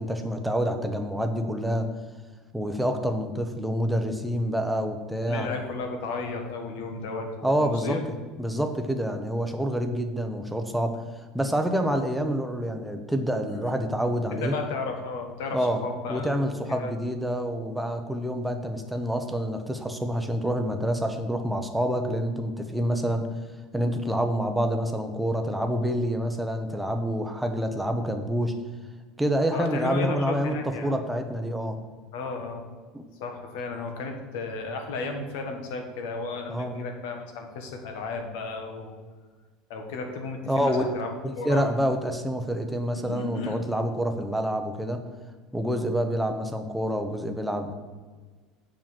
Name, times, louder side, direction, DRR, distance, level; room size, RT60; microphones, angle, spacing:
voice 1, 0.0-1.9 2.5-5.5 7.4-8.0 8.4-11.0 11.3-14.5 15.5-15.8 16.1-23.3 23.7-28.5 29.2-31.8 32.9-33.0 36.5-36.8 40.5-40.9 41.2-45.0 45.5-47.7, equal, ahead, 5 dB, 0.7 m, -27 dB
voice 2, 5.3-8.0 13.5-13.6 14.3-16.9 29.5-30.9 32.1-32.7 33.2-39.0 39.7-41.6 42.9-43.7, left 4 dB, 80° left, 4 dB, 1.7 m, -34 dB
7.4 x 5.8 x 7.5 m, 1.4 s
cardioid pair, 165°, 0 cm